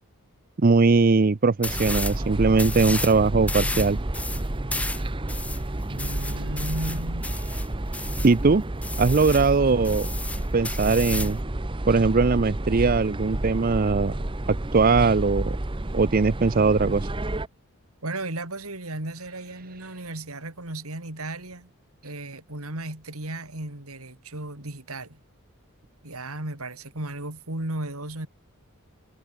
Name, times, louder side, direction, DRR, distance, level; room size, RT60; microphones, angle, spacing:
voice 1, 0.6-4.0 8.2-8.6 9.0-10.1 10.5-11.4 11.9-14.1 14.5-15.6 15.9-17.1, right 4 dB, 40° right, 0.5 m, -20 dB
sound 1, 1.6-2.2 2.5-3.2 3.5-8.3 8.8-9.5 9.8-11.4, left 2 dB, 5° left, 1.7 m, -33 dB
sound 2, 1.6-17.5, right 1 dB, 25° right, 0.9 m, -30 dB
voice 2, 5.9-7.3 18.0-21.7 22.0-25.2 26.0-28.3, right 2 dB, 80° right, 4.0 m, -35 dB
head